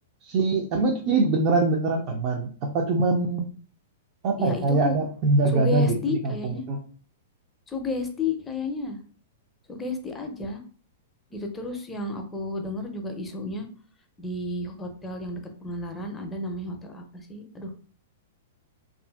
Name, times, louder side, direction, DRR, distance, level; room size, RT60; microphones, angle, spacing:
voice 1, 0.2-3.5 4.2-6.8, right 3 dB, 45° right, 1 dB, 0.4 m, -23 dB
voice 2, 4.4-5.0 5.5-6.6 7.7-9.0 9.7-10.6 11.3-13.7 14.2-17.8, left 3 dB, 15° left, 4 dB, 0.5 m, -32 dB
2.7 x 2.4 x 2.3 m, 0.43 s
hypercardioid pair, 110°, 0 cm